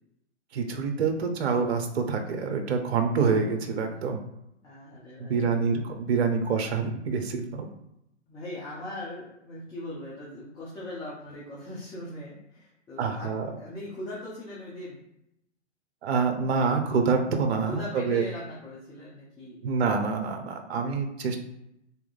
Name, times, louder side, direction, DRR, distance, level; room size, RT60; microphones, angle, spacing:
voice 1, 0.5-4.2 5.2-7.7 13.0-13.5 16.0-18.2 19.6-21.4, right 5 dB, 60° right, 5 dB, 0.8 m, -26 dB
voice 2, 4.6-5.5 8.3-15.0 17.6-19.6, left 1 dB, 10° left, -7 dB, 0.8 m, -40 dB
3.6 x 3.0 x 3.9 m, 0.82 s
hypercardioid pair, 130°, 36 cm